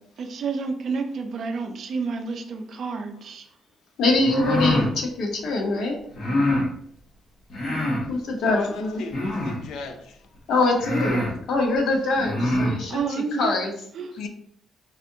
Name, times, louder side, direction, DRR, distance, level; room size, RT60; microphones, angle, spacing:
voice 1, 0.2-3.5 12.9-13.6 13.9-14.2, right 4 dB, 45° right, 0.4 m, -29 dB
voice 2, 4.0-6.0 8.1-9.0 10.5-13.0 13.4-13.7, left 2 dB, 70° left, 0.9 m, -23 dB
sound 1, 4.1-4.9 6.1-6.7 7.5-8.1 9.1-9.7 10.3-10.4 10.8-11.3 12.1-12.8, left 1 dB, 45° left, 1.1 m, -24 dB
voice 3, 8.5-10.2 14.2-14.3, left 4 dB, 85° left, 0.4 m, -36 dB
4.0 x 2.5 x 2.7 m
cardioid pair, 175°, 0 cm